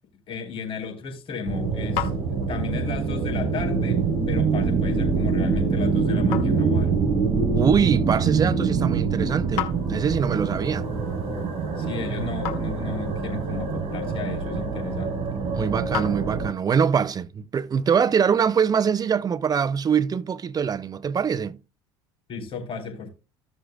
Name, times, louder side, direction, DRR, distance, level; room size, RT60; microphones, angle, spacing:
voice 1, 0.3-2.2 2.5-7.1 11.8-15.4 22.3-23.1, left 5 dB, 45° left, 4.1 m, -34 dB
sound 1, 1.0-16.8, left 11 dB, 60° left, 1.5 m, -40 dB
sound 2, 1.4-16.5, right 5 dB, 45° right, 3.9 m, -25 dB
voice 2, 7.5-10.8 15.5-21.6, right 7 dB, 30° right, 0.7 m, -23 dB
15.0 x 6.4 x 2.4 m
hypercardioid pair, 75°, 13 cm